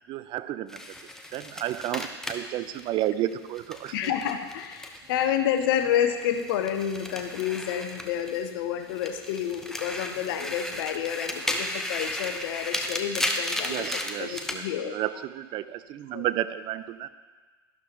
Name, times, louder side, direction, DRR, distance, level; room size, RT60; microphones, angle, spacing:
voice 1, 0.1-0.8 1.3-4.1 13.7-17.1, right 13 dB, 35° right, 13 dB, 0.5 m, -32 dB
sound 1, 0.7-5.3 5.6-8.5 8.9-14.6, left 1 dB, 5° left, 1.0 m, -34 dB
voice 2, 3.9-15.0 16.1-16.3, left 9 dB, 60° left, 7 dB, 1.0 m, -29 dB
12.0 x 12.0 x 3.0 m, 1.4 s
figure-of-eight pair, 85°, 13 cm